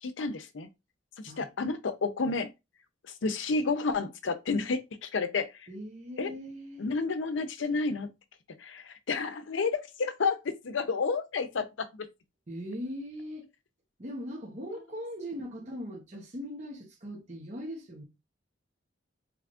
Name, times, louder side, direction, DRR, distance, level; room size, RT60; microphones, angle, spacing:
voice 1, 0.0-0.7 1.2-2.5 3.2-5.7 6.2-6.3 6.8-8.1 8.6-12.1, left 4 dB, 90° left, 0.6 m, -31 dB
voice 2, 5.7-6.9 12.5-13.5 14.0-18.0, equal, 40° right, 0.8 m, -40 dB
3.5 x 3.1 x 2.5 m
head